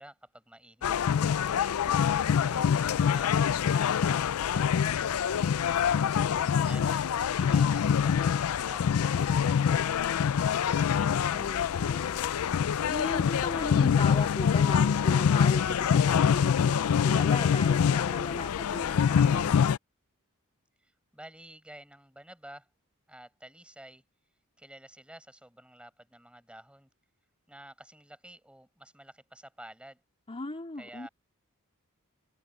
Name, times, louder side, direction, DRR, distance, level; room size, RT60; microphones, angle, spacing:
voice 1, 0.0-1.8 2.3-10.4 20.8-22.7 23.1-24.0 24.6-26.9 27.5-30.0 30.8-31.1, right 1 dB, 5° right, 6.4 m, -51 dB
sound 1, 0.8-19.8, left 7 dB, 80° left, 0.4 m, -25 dB
voice 2, 10.9-12.2 12.9-19.6 30.3-31.1, left 2 dB, 30° left, 2.6 m, -37 dB
open air
head